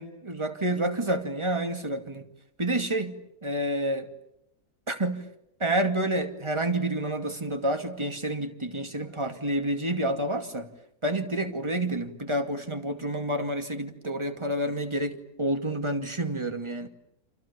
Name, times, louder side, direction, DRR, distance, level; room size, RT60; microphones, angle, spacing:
voice 1, 0.0-2.3 2.6-4.1 4.9-5.3 5.6-10.7 11.0-16.9, right 1 dB, 20° right, 6 dB, 2.4 m, -29 dB
29.5 x 28.0 x 7.0 m, 0.78 s
omnidirectional pair, 1.7 m